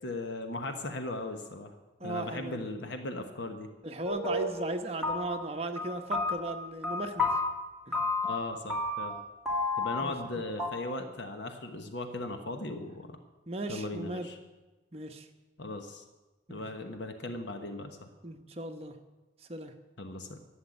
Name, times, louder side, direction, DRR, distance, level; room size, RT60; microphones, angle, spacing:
voice 1, 0.0-1.7 2.0-3.7 8.2-9.1 9.8-13.1 13.7-14.4 15.6-16.0 16.5-18.1 20.0-20.4, left 2 dB, 70° left, 6 dB, 1.1 m, -38 dB
voice 2, 2.0-2.7 3.8-7.3 7.9-8.0 10.0-10.1 13.5-14.3 14.9-15.3 16.5-16.6 18.2-18.9 19.5-19.7, right 2 dB, 30° right, 5 dB, 1.0 m, -37 dB
sound 1, 4.0-4.7 5.0-5.5 5.8-7.5 7.9-8.4 8.7-9.2 9.5-10.3 10.6-10.7, left 3 dB, ahead, 2.3 m, -31 dB
11.5 x 8.0 x 9.7 m, 1.2 s
head